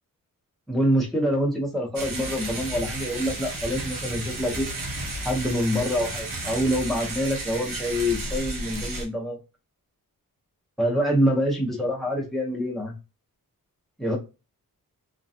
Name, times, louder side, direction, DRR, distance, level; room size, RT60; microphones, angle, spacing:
voice 1, 0.7-4.7 5.2-9.4 10.8-12.9 14.0-14.2, equal, ahead, -1 dB, 0.6 m, -25 dB
sound 1, 1.9-9.0, right 2 dB, 65° right, 0.9 m, -33 dB
2.4 x 2.1 x 2.6 m, 0.28 s
wide cardioid pair, 175°, 36 cm